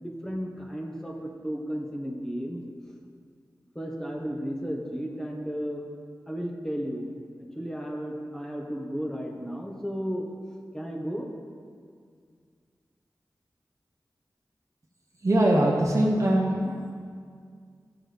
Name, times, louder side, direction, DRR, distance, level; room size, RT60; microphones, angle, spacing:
voice 1, 0.0-2.6 3.7-5.8 6.3-7.1 7.5-10.3 10.7-11.3, equal, 5° left, 0 dB, 1.5 m, -33 dB
voice 2, 15.2-16.9, right 1 dB, 45° right, -2 dB, 1.2 m, -22 dB
13.5 x 7.3 x 3.6 m, 2.1 s
wide cardioid pair, 50°, 7 cm